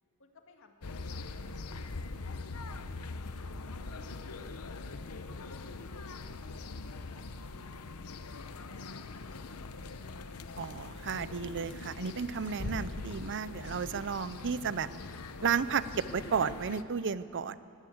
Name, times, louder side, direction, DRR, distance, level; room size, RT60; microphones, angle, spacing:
voice 1, 0.2-2.7 2.9-4.4 4.8-4.9 5.4-7.7 8.1-10.3, left 3 dB, 60° left, 4 dB, 2.1 m, -63 dB
sound 1, 0.8-16.8, left 3 dB, 85° left, 0.9 m, -42 dB
voice 2, 10.6-14.9 15.4-17.6, right 6 dB, 55° right, 15 dB, 0.6 m, -33 dB
20.5 x 17.0 x 7.9 m, 2.5 s
head